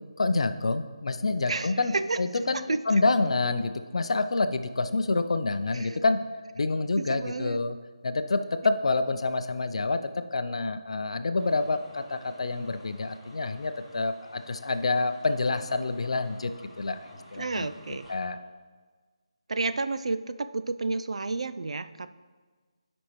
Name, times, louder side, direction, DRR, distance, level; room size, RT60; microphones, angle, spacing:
voice 1, 0.2-6.2 6.6-7.7 8.0-10.0 10.3-16.5 16.8-17.0 17.3-17.7 18.1-18.4, left 3 dB, 65° left, 10 dB, 0.5 m, -27 dB
voice 2, 1.5-2.2 2.5-2.8 5.7-6.0 7.0-7.6 17.3-18.1 19.5-22.1, right 3 dB, 70° right, 12 dB, 0.4 m, -31 dB
sound 1, 11.4-18.3, equal, ahead, 1.5 m, -52 dB
11.0 x 5.3 x 3.1 m, 1.4 s
figure-of-eight pair, 160°, 3 cm